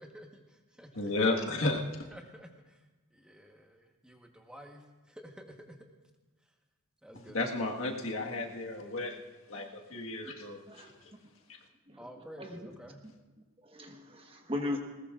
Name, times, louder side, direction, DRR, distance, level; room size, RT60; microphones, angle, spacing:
voice 1, 0.0-1.1 2.1-2.8 3.1-5.8 7.0-7.4 12.0-13.0, equal, 5° right, 2 dB, 1.2 m, -51 dB
voice 2, 0.9-1.8 7.3-9.2 9.5-10.9, left 2 dB, 65° left, 1 dB, 1.6 m, -33 dB
voice 3, 13.6-14.8, left 2 dB, 25° right, 3 dB, 1.3 m, -37 dB
20.0 x 19.0 x 2.5 m, 1.2 s
head